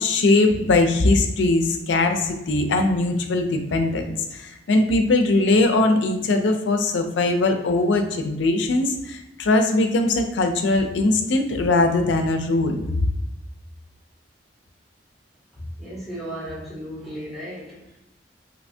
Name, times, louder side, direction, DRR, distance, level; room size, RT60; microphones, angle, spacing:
voice 1, 0.0-13.1, left 2 dB, 80° left, 5 dB, 0.4 m, -21 dB
voice 2, 15.8-17.8, equal, ahead, -8 dB, 1.0 m, -34 dB
3.2 x 2.8 x 2.7 m, 0.90 s
head